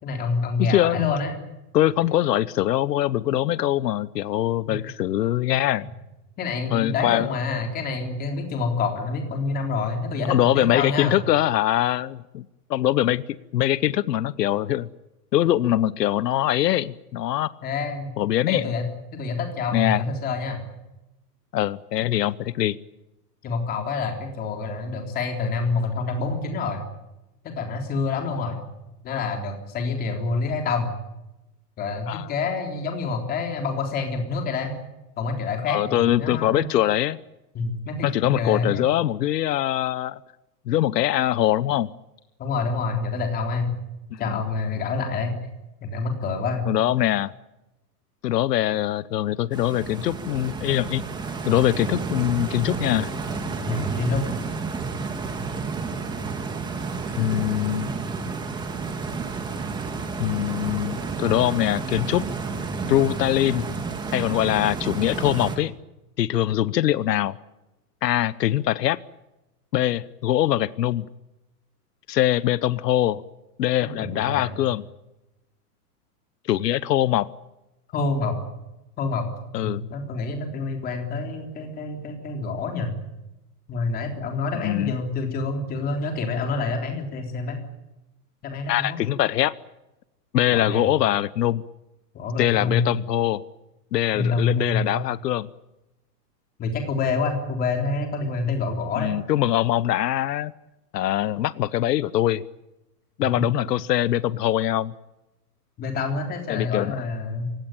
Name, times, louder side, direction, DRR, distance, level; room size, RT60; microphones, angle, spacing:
voice 1, 0.0-1.3 4.7-4.8 5.8-5.9 6.4-11.2 17.6-18.1 18.5-20.6 23.4-26.8 27.4-28.6 29.0-30.9 31.8-34.7 35.2-36.6 37.5-38.8 42.4-43.8 44.2-45.3 45.8-46.6 53.7-54.2 74.0-74.6 77.9-78.3 79.0-79.2 79.6-82.9 83.7-87.6 88.4-89.0 90.5-90.9 92.1-92.8 94.1-94.9 96.6-99.2 103.4-103.5 105.8-107.5, left 4 dB, 20° left, 4 dB, 3.6 m, -27 dB
voice 2, 0.6-1.1 1.7-5.9 6.7-7.3 10.3-13.2 13.5-14.9 15.3-17.5 18.2-18.7 19.7-20.0 21.5-22.8 32.1-32.3 35.7-37.2 38.0-40.2 40.7-41.9 44.1-44.4 46.7-47.3 48.2-51.0 51.4-53.1 57.2-57.9 60.2-62.3 62.9-63.7 64.1-65.7 66.2-67.4 68.0-69.0 69.7-71.1 72.1-73.2 73.6-74.8 76.5-77.3 79.5-79.8 84.6-85.0 88.7-89.5 90.3-91.6 92.4-93.4 93.9-95.5 98.9-100.5 100.9-102.4 103.2-104.9 106.5-107.0, left 13 dB, 90° left, 18 dB, 1.0 m, -23 dB
Stream, 49.5-65.6, right 4 dB, 10° right, 1.9 m, -31 dB
28.0 x 17.0 x 9.0 m, 0.98 s
supercardioid pair, 170°, 48 cm